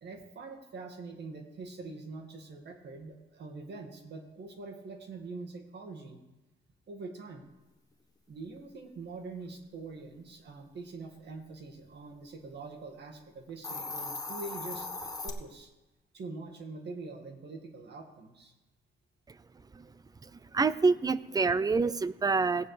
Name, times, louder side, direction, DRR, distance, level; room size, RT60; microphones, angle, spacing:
voice 1, 0.0-6.2 6.9-7.4 8.3-14.9 15.2-15.7 16.1-18.5 21.6-21.7, right 3 dB, 60° right, 4 dB, 1.9 m, -44 dB
Hiss, 13.5-15.3, left 3 dB, 20° left, 1.3 m, -38 dB
voice 2, 20.2-22.7, right 4 dB, 20° right, 17 dB, 0.4 m, -27 dB
17.0 x 8.8 x 3.3 m, 1.0 s
cardioid pair, 90°, 20 cm